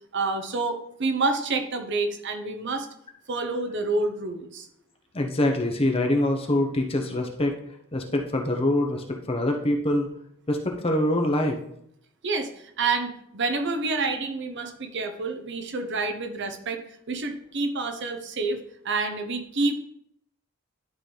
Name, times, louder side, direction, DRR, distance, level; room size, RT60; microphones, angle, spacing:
voice 1, 0.1-2.9 3.3-4.7 12.2-16.8 17.1-18.6 18.8-19.8, right 3 dB, 55° right, 6 dB, 0.8 m, -28 dB
voice 2, 5.1-7.5 7.9-10.1 10.5-11.6, left 1 dB, 25° left, 3 dB, 0.8 m, -24 dB
11.5 x 3.9 x 3.3 m, 0.73 s
head